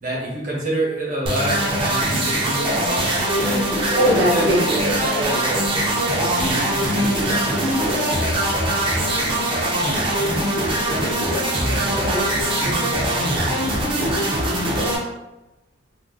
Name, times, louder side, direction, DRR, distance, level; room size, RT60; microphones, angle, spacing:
voice 1, 0.0-7.4 8.0-8.6 10.8-11.4 11.7-12.2, right 1 dB, 45° right, -4 dB, 1.0 m, -28 dB
sound 1, 1.3-15.0, right 1 dB, 30° right, 0.6 m, -22 dB
voice 2, 3.9-4.6 11.7-12.8 13.2-14.5, equal, 80° right, -2 dB, 0.8 m, -24 dB
2.5 x 2.1 x 3.8 m, 1.0 s
head